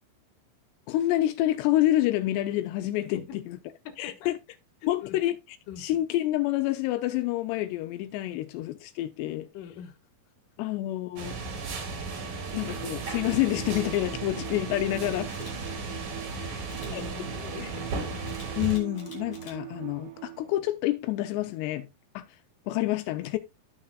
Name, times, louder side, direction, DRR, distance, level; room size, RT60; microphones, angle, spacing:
voice 1, 0.9-3.2 3.5-3.6 4.0-4.4 4.9-5.4 5.8-9.5 10.6-11.4 12.5-15.3 16.9-17.0 18.6-21.9 22.2-22.3 22.7-23.4, left 15 dB, 85° left, 2.8 m, -28 dB
voice 2, 3.8-4.3 4.8-5.2 5.7-5.9 8.3-8.7 9.5-10.0 12.2-12.6 15.4-15.9 16.3-17.9, left 8 dB, 65° left, 2.6 m, -44 dB
sound 1, 11.2-18.8, right 3 dB, 50° right, 2.8 m, -35 dB
Bowed string instrument, 12.2-20.7, right 14 dB, 75° right, 3.7 m, -43 dB
Camera, 15.3-15.5 16.7-16.9 18.2-19.6 20.1-20.3, left 3 dB, 45° left, 3.3 m, -49 dB
13.5 x 5.8 x 2.4 m
omnidirectional pair, 4.9 m